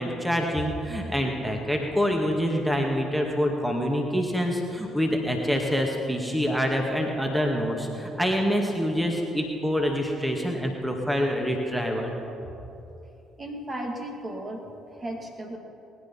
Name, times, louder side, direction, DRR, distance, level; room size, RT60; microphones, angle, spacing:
voice 1, 0.0-12.1, equal, 5° right, 1 dB, 2.1 m, -26 dB
voice 2, 13.4-15.6, right 1 dB, 30° right, 2 dB, 2.3 m, -35 dB
20.5 x 10.5 x 5.6 m, 3.0 s
figure-of-eight pair, 50°, 0 cm